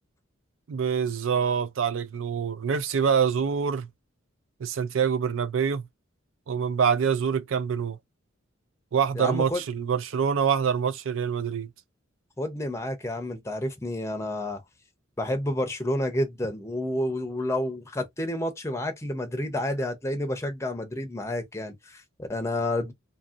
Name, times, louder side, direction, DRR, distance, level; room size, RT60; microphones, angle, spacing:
voice 1, 0.7-3.9 4.6-5.8 6.5-8.0 8.9-11.7, right 7 dB, 75° right, 0.4 m, -25 dB
voice 2, 9.1-9.6 12.4-14.6 15.2-22.9, left 1 dB, 15° left, 0.6 m, -30 dB
2.8 x 2.7 x 2.4 m
head